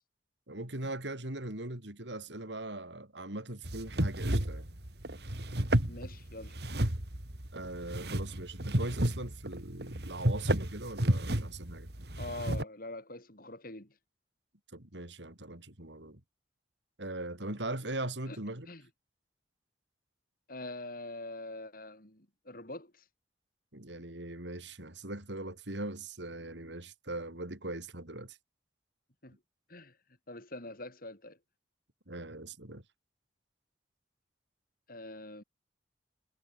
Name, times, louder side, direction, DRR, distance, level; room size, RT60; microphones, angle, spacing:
voice 1, 0.5-4.7 7.5-11.9 14.7-16.2 17.0-18.7 23.7-28.4 32.1-32.8, right 2 dB, 90° right, 4.7 m, -40 dB
sound 1, 3.6-12.6, right 1 dB, 65° right, 3.2 m, -32 dB
voice 2, 5.8-6.6 12.2-14.0 18.3-18.4 18.7-18.9 20.5-23.0 29.2-29.4 29.7-30.0 30.3-31.4 34.9-35.4, left 2 dB, 55° left, 7.7 m, -44 dB
head